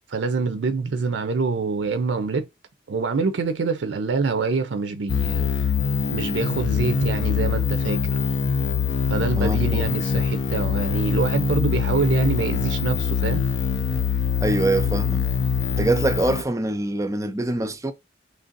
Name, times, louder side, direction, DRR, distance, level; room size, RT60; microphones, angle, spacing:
voice 1, 0.1-2.5 2.9-5.7 6.1-8.2 9.1-13.4, right 4 dB, 75° right, 0.5 m, -25 dB
sound 1, 5.1-16.4, left 6 dB, 65° left, 0.4 m, -23 dB
voice 2, 9.4-9.9 14.4-15.3 15.7-17.9, right 2 dB, 15° right, 0.4 m, -24 dB
3.2 x 2.5 x 3.8 m
head